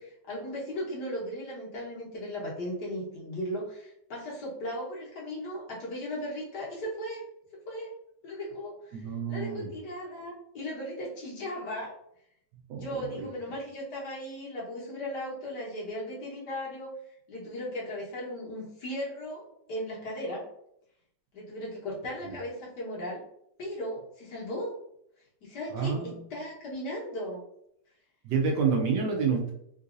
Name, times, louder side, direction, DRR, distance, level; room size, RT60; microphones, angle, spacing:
voice 1, 0.0-7.2 7.7-7.9 8.2-11.9 12.7-16.9 17.3-20.4 21.3-23.2 23.6-24.7 25.4-27.4, equal, 65° left, -5 dB, 1.5 m, -37 dB
voice 2, 8.9-9.7 12.7-13.3 22.2-22.4 25.7-26.3 28.2-29.5, right 5 dB, 75° right, 1 dB, 1.1 m, -29 dB
3.8 x 2.6 x 2.4 m, 0.74 s
omnidirectional pair, 2.0 m